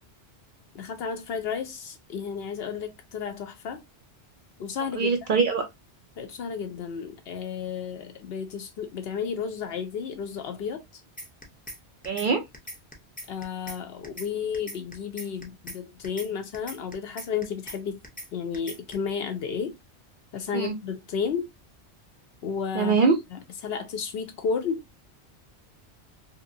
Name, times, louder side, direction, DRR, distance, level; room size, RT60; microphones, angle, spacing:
voice 1, 0.7-3.8 4.6-5.1 6.2-10.8 13.3-18.0 18.3-19.7 20.3-21.5 22.4-23.0 23.6-24.8, left 6 dB, 70° left, 0.8 m, -32 dB
voice 2, 5.0-5.6 12.0-12.4 20.5-20.7 22.7-23.2, right 5 dB, 55° right, 0.6 m, -22 dB
sound 1, 11.2-11.8 12.0-12.3 12.5-13.8 14.0-14.3 14.5-15.8 16.0-16.3 16.5-17.8 18.0-18.3 18.5-18.9, equal, 10° left, 0.6 m, -39 dB
2.9 x 2.7 x 2.6 m
omnidirectional pair, 1.1 m